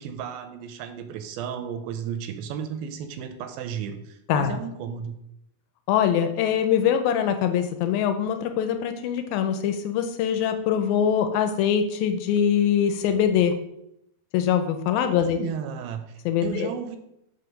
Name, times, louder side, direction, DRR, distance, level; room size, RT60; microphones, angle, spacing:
voice 1, 0.0-5.2 15.1-17.0, right 7 dB, 80° right, 8 dB, 2.4 m, -34 dB
voice 2, 5.9-13.5 14.3-15.4 16.3-16.7, left 8 dB, 80° left, 8 dB, 2.3 m, -23 dB
5.4 x 4.9 x 6.2 m, 0.80 s
omnidirectional pair, 4.4 m